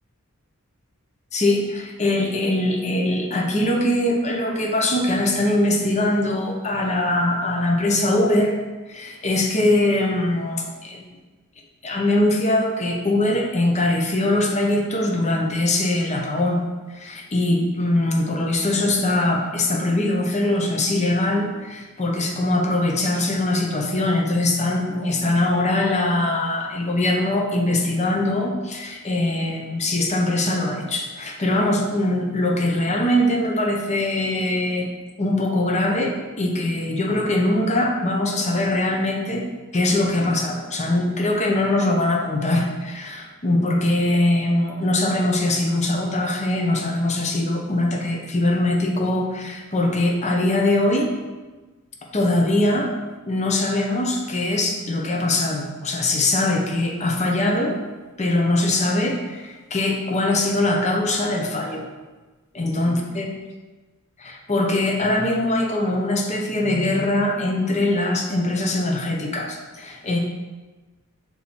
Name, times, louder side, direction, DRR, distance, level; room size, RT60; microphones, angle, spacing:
voice 1, 1.3-8.5 8.9-11.0 11.8-16.6 16.9-34.9 35.2-39.5 39.7-51.1 52.1-52.9 53.2-57.8 58.2-61.8 62.5-63.3 64.2-70.2, left 1 dB, 30° left, 1 dB, 0.8 m, -22 dB
6.3 x 4.2 x 4.3 m, 1.2 s
head